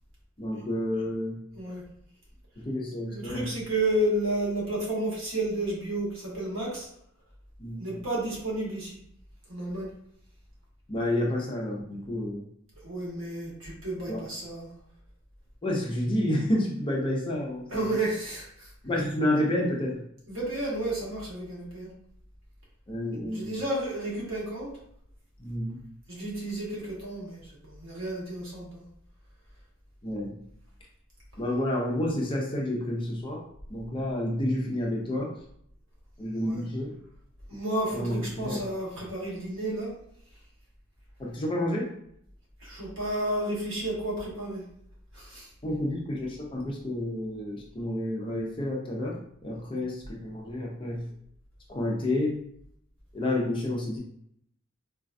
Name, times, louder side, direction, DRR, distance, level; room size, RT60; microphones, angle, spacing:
voice 1, 0.4-1.4 2.6-3.5 7.6-7.9 10.9-12.4 14.1-14.2 15.6-18.0 18.8-20.0 22.9-23.5 25.4-25.8 30.0-30.4 31.4-33.4 33.7-35.3 36.2-36.9 37.9-38.6 41.2-41.9 45.6-51.1 51.7-52.4 53.1-54.0, left 1 dB, 25° left, -1 dB, 0.5 m, -30 dB
voice 2, 3.1-6.9 7.8-9.0 9.5-9.9 12.8-14.7 17.7-18.7 20.3-21.9 23.3-24.7 26.1-28.8 36.4-36.6 37.5-39.9 42.6-44.6 45.1-45.5, right 1 dB, 65° right, -5 dB, 1.3 m, -31 dB
3.9 x 2.2 x 2.5 m, 0.71 s
head